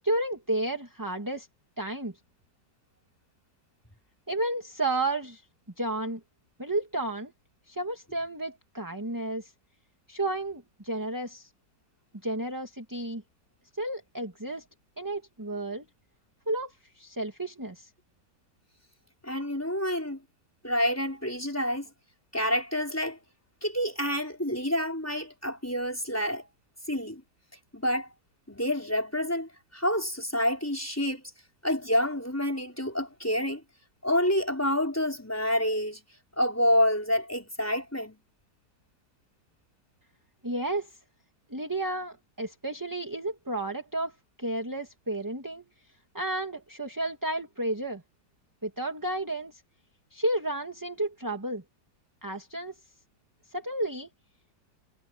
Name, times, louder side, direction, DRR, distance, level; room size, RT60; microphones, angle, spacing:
voice 1, 0.0-1.5 1.8-2.1 4.3-5.4 5.8-6.2 6.6-7.3 7.7-9.5 10.1-11.5 12.2-13.2 13.7-14.6 15.0-15.8 16.5-17.9 40.4-41.0 41.5-45.6 46.1-48.0 48.6-49.6 50.1-51.6 52.2-52.7 53.5-54.1, right 2 dB, 10° right, 2.4 m, -32 dB
voice 2, 19.2-20.2 20.6-21.9 22.3-23.2 23.6-26.4 26.9-27.2 27.7-28.1 28.5-31.2 31.6-33.6 34.0-36.0 36.4-38.2, left 1 dB, 10° left, 4.9 m, -28 dB
omnidirectional pair, 1.9 m